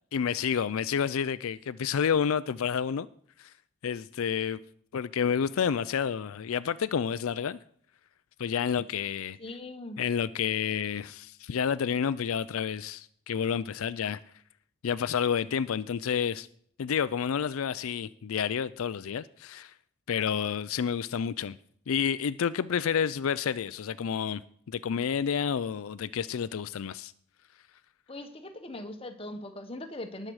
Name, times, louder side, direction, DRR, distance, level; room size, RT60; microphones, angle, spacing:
voice 1, 0.1-3.1 3.4-3.5 3.8-4.6 4.9-7.6 8.4-9.4 10.0-14.2 14.8-16.5 16.8-19.7 20.1-21.6 21.9-24.4 24.7-27.1, left 7 dB, 80° left, 0.4 m, -29 dB
voice 2, 9.4-10.0 28.1-30.3, left 1 dB, 25° left, 1.3 m, -40 dB
19.5 x 7.6 x 4.8 m
head